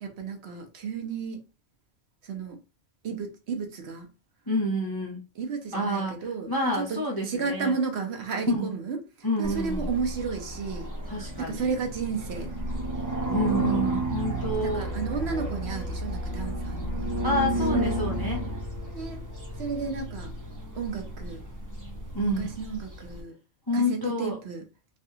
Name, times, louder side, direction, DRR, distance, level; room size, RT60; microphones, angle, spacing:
voice 1, 0.0-1.4 2.2-2.6 3.0-4.1 5.4-7.0 7.2-9.0 9.4-10.9 11.4-12.5 14.3-17.2 18.9-19.2 19.6-20.3 20.7-21.4 22.4-23.4 23.7-24.7, right 5 dB, 60° right, 0.9 m, -33 dB
voice 2, 4.5-5.2 5.7-7.8 8.5-8.7 9.2-9.8 11.1-11.6 13.3-14.9 17.2-18.5 22.1-22.5 23.7-24.4, left 1 dB, 30° left, 0.4 m, -28 dB
sound 1, 9.4-23.2, right 1 dB, 20° right, 0.8 m, -32 dB
3.3 x 2.5 x 2.7 m
omnidirectional pair, 1.3 m